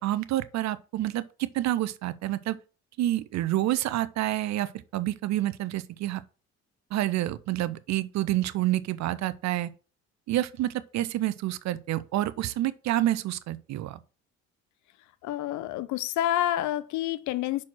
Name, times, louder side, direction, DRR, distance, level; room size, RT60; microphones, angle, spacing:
voice 1, 0.0-2.6 3.0-6.2 6.9-9.7 10.3-14.0, right 14 dB, 60° right, 0.7 m, -28 dB
voice 2, 15.2-17.6, left 13 dB, 65° left, 0.7 m, -28 dB
6.1 x 4.4 x 6.1 m
supercardioid pair, 65°, 31 cm